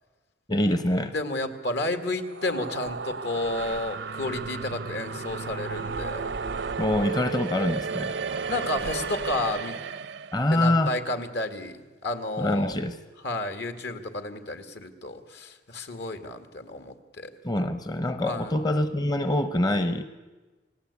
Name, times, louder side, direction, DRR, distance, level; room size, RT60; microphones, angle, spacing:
voice 1, 0.5-1.1 6.8-8.2 10.3-10.9 12.4-13.0 17.4-20.0, left 1 dB, 25° left, 10 dB, 0.8 m, -25 dB
voice 2, 1.1-6.3 8.5-9.8 10.5-12.8 13.2-17.3 18.3-18.5, left 2 dB, 70° left, 8 dB, 2.1 m, -31 dB
sound 1, 2.1-10.4, right 5 dB, 75° right, 0.7 m, -33 dB
28.0 x 18.5 x 8.4 m, 1.3 s
head